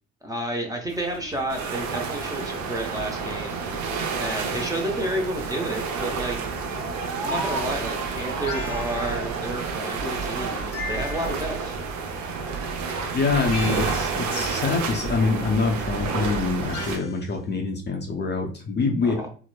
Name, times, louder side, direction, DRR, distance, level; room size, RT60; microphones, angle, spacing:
voice 1, 0.2-3.8 4.2-6.4 7.2-11.8 19.0-19.3, right 1 dB, 10° right, 1 dB, 0.6 m, -31 dB
sound 1, 0.9-13.2, right 3 dB, 90° right, 0.5 m, -38 dB
sound 2, 1.5-17.0, right 5 dB, 50° right, 0.7 m, -30 dB
sound 3, 8.5-9.4 10.7-11.7 13.5-14.4 16.7-17.3, left 3 dB, 70° left, 0.7 m, -37 dB
voice 2, 13.1-19.1, left 4 dB, 30° left, 2 dB, 0.5 m, -25 dB
2.9 x 2.0 x 2.2 m, 0.39 s
hypercardioid pair, 55°, 37 cm